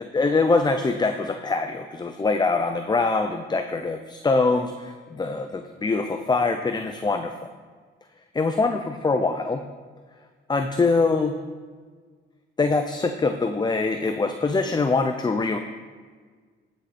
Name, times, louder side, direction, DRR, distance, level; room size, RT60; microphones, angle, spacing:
voice 1, 0.1-7.5 8.3-9.6 10.5-11.4 12.6-15.6, left 3 dB, 20° left, 7 dB, 0.6 m, -23 dB
12.5 x 6.8 x 4.3 m, 1.5 s
cardioid pair, 90°, 20 cm